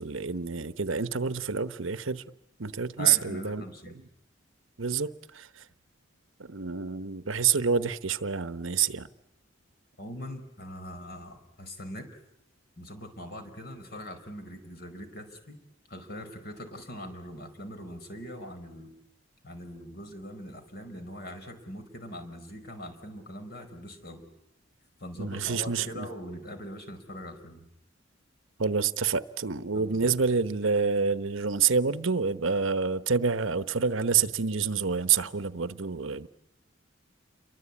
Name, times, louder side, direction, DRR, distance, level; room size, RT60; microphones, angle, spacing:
voice 1, 0.0-2.2 2.6-3.6 4.8-5.6 6.4-9.1 25.2-26.1 28.6-36.3, right 6 dB, 75° right, 1.0 m, -27 dB
voice 2, 3.0-4.0 10.0-12.2 12.8-15.6 15.9-18.9 19.4-24.2 25.0-27.7 29.7-30.2, equal, 50° left, 4.9 m, -42 dB
29.0 x 23.5 x 8.5 m
head